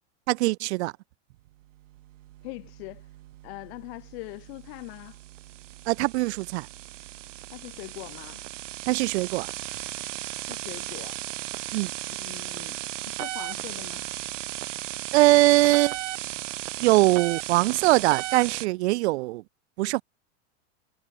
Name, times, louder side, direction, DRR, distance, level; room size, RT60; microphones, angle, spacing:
voice 1, 0.3-0.9 5.9-6.7 8.9-9.5 11.7-11.9 15.1-16.0 16.8-19.4 19.8-20.0, right 20 dB, 65° right, 0.7 m, -22 dB
sound 1, 1.8-18.7, right 15 dB, 90° right, 1.4 m, -36 dB
voice 2, 2.4-3.0 3.4-5.2 7.5-8.4 10.4-11.2 12.1-12.8 13.1-14.0, left 28 dB, 55° left, 3.5 m, -42 dB
supercardioid pair, 155°, 36 cm